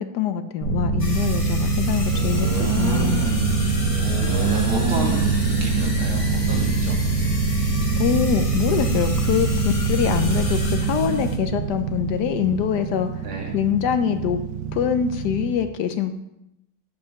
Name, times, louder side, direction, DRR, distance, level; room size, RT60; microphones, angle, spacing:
voice 1, 0.0-3.3 8.0-13.1 13.5-14.4 14.7-16.1, left 8 dB, 70° left, 9 dB, 1.0 m, -24 dB
sound 1, 0.6-13.8, right 3 dB, 50° right, 1.4 m, -24 dB
sound 2, 1.0-11.4, left 2 dB, 25° left, 0.8 m, -35 dB
sound 3, 2.1-15.6, right 7 dB, 65° right, 1.3 m, -30 dB
voice 2, 4.0-7.0 13.2-13.6, right 2 dB, 80° right, 0 dB, 2.5 m, -32 dB
9.1 x 5.3 x 5.8 m, 0.85 s
omnidirectional pair, 2.2 m